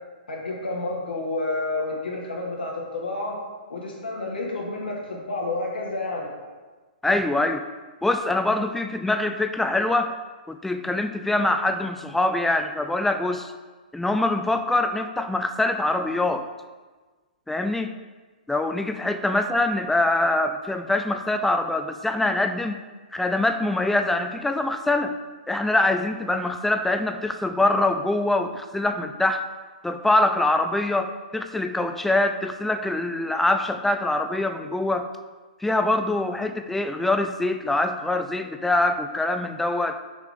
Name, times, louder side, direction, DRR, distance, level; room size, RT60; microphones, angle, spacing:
voice 1, 0.3-3.4 3.7-6.3, left 2 dB, 85° left, -2 dB, 1.6 m, -30 dB
voice 2, 7.0-7.6 8.0-10.1 10.5-13.5 13.9-16.5 17.5-17.9 18.5-22.8 23.1-25.1 25.5-29.4 29.8-35.1 35.6-40.0, left 2 dB, 5° left, 7 dB, 0.3 m, -24 dB
6.3 x 4.9 x 3.5 m, 1.3 s
hypercardioid pair, 125°, 5 cm